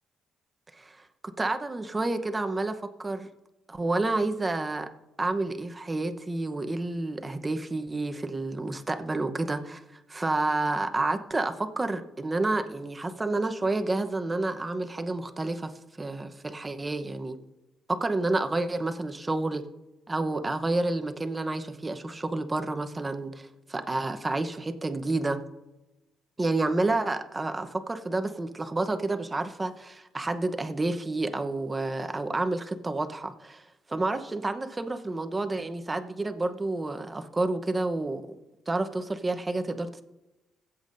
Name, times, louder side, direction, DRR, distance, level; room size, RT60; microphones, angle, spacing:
voice 1, 1.2-3.3 3.7-4.9 5.2-15.7 16.0-17.4 17.9-19.6 20.1-25.4 26.4-33.6 33.9-38.4 38.7-40.0, right 2 dB, 20° right, 7 dB, 0.9 m, -29 dB
19.5 x 8.2 x 2.6 m, 1.0 s
cardioid pair, 90°, 0 cm